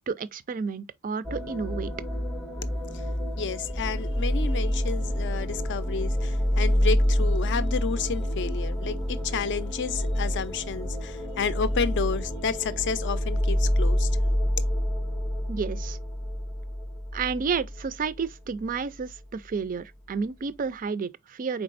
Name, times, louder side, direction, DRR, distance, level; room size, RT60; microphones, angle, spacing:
voice 1, 0.1-1.9 15.5-16.0 17.1-21.6, right 5 dB, 40° right, 0.4 m, -31 dB
sound 1, 1.2-18.8, equal, 5° left, 0.6 m, -27 dB
voice 2, 3.4-14.1, left 5 dB, 55° left, 0.5 m, -31 dB
4.6 x 4.2 x 2.5 m
head